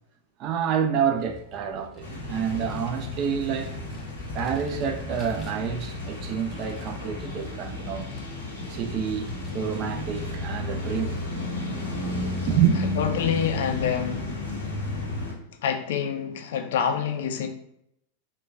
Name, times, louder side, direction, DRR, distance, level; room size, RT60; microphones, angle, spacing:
voice 1, 0.4-3.8 4.3-8.1 8.7-11.2 12.5-12.8, right 8 dB, 40° right, 0.4 m, -28 dB
Vehicle, 1.1-14.3, left 3 dB, 20° left, 0.7 m, -46 dB
sound 1, 2.0-15.3, left 2 dB, 70° right, 1.4 m, -33 dB
voice 2, 13.0-14.5 15.6-17.5, left 7 dB, 55° left, 0.4 m, -27 dB
3.7 x 2.2 x 2.4 m
figure-of-eight pair, 90°, 0 cm